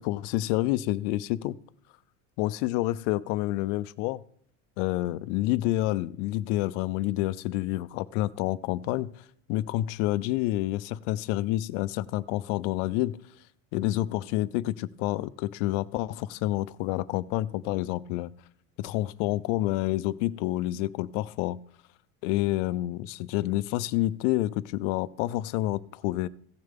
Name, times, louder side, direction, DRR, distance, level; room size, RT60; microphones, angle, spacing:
voice 1, 0.0-1.6 2.4-4.2 4.8-9.1 9.5-13.2 13.7-18.3 18.8-21.6 22.2-26.3, left 16 dB, 65° left, 17 dB, 0.6 m, -28 dB
16.0 x 6.6 x 3.6 m, 0.65 s
supercardioid pair, 130°, 38 cm